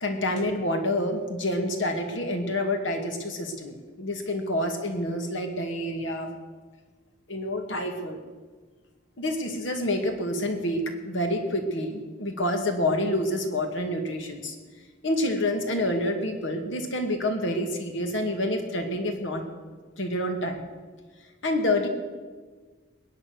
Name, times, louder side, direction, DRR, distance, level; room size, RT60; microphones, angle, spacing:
voice 1, 0.0-6.3 7.3-8.2 9.2-14.6 15.0-19.4 20.0-20.6 21.4-21.9, left 1 dB, 75° left, 5 dB, 2.1 m, -28 dB
21.5 x 8.9 x 6.5 m, 1.4 s
head